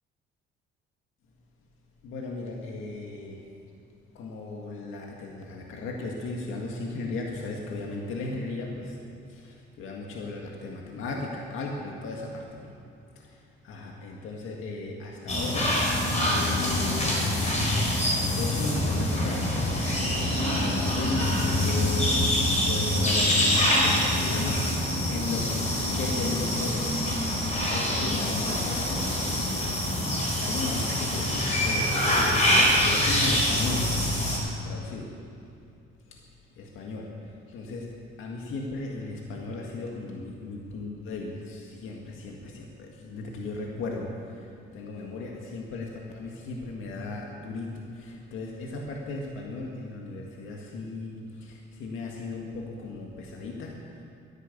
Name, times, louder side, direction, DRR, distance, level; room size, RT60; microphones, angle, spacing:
voice 1, 2.0-3.5 4.1-9.0 9.3-12.8 13.2-15.8 16.3-17.3 18.3-22.2 22.7-29.9 30.2-33.9 34.3-35.2 36.1-36.3 36.6-54.0, left 3 dB, 80° left, 0 dB, 1.9 m, -36 dB
sound 1, 15.3-34.4, left 1 dB, 35° left, 4.4 m, -25 dB
13.0 x 11.0 x 8.4 m, 2.4 s
cardioid pair, 100°, 20 cm